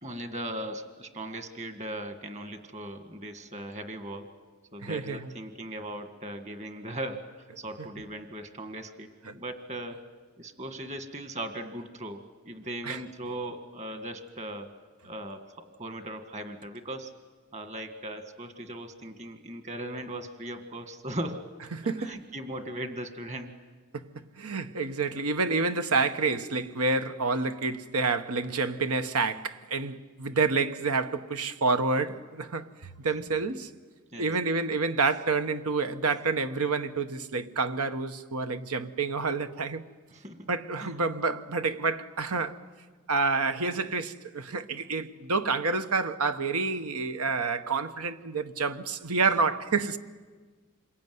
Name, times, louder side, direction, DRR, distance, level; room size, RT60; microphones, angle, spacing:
voice 1, 0.0-4.3 4.7-10.1 10.4-14.7 15.0-17.1 17.5-21.5 21.8-23.5 33.2-33.3 34.1-34.3 40.1-40.5 40.8-40.9, right 1 dB, 30° right, 1.9 m, -38 dB
voice 2, 4.8-5.3 12.8-13.0 21.7-22.1 23.9-24.0 24.4-32.7 33.0-33.7 34.2-39.8 40.5-42.6 43.1-50.0, right 4 dB, 80° right, 1.2 m, -28 dB
27.5 x 22.0 x 9.5 m
head